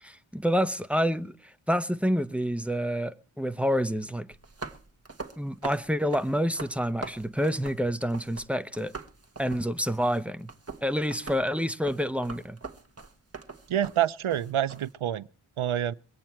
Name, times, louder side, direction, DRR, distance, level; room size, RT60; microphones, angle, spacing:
voice 1, 0.0-4.3 5.4-8.9 9.4-10.5 10.8-12.6, equal, 5° right, 0.7 m, -28 dB
sound 1, 4.3-8.5 8.7-14.9, right 3 dB, 30° right, 1.4 m, -42 dB
voice 2, 13.7-15.3 15.6-15.9, right 11 dB, 80° right, 0.7 m, -27 dB
23.5 x 8.7 x 4.5 m
wide cardioid pair, 80°, 49 cm